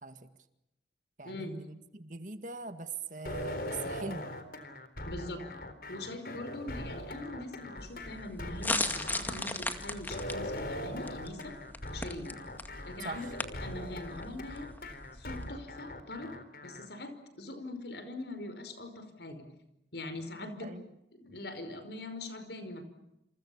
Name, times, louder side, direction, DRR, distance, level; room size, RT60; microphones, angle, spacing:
voice 1, 0.0-0.3 1.2-4.4 13.0-13.3 20.6-20.8, right 4 dB, 45° right, 9 dB, 1.9 m, -42 dB
voice 2, 1.2-1.6 5.0-5.5 5.9-11.6 11.9-12.4 12.8-14.7 15.1-16.3 16.6-19.5 19.9-20.7 21.1-22.8, left 2 dB, 75° left, 9 dB, 5.2 m, -42 dB
sound 1, 3.2-16.9, left 1 dB, 55° left, 4.0 m, -41 dB
sound 2, 7.8-15.5, left 2 dB, 10° left, 2.1 m, -38 dB
29.0 x 28.0 x 7.2 m, 0.87 s
head